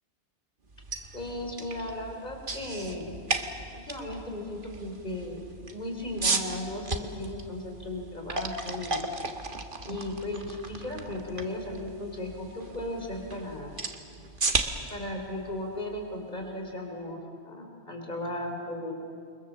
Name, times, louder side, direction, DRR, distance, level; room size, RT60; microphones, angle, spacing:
sound 1, 0.7-16.6, right 3 dB, 45° right, 1.7 m, -35 dB
voice 1, 1.1-3.1 3.7-5.4 5.7-9.1 9.9-13.7 14.9-17.2 17.4-18.9, left 1 dB, 40° left, 2 dB, 4.1 m, -36 dB
29.0 x 24.0 x 7.5 m, 2.4 s
omnidirectional pair, 1.2 m